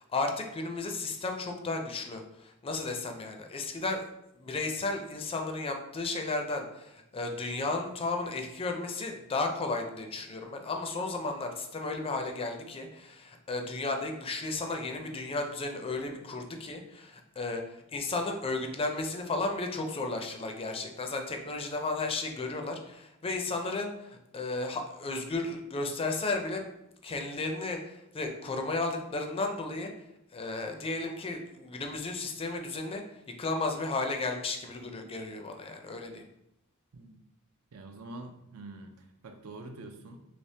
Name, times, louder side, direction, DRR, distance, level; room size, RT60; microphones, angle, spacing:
voice 1, 0.0-4.0 4.3-26.7 27.0-29.9 30.3-33.0 33.4-36.2, left 3 dB, 25° left, 4 dB, 0.4 m, -34 dB
voice 2, 37.7-40.2, right 2 dB, 75° right, 6 dB, 0.5 m, -45 dB
3.3 x 3.2 x 2.7 m, 0.84 s
head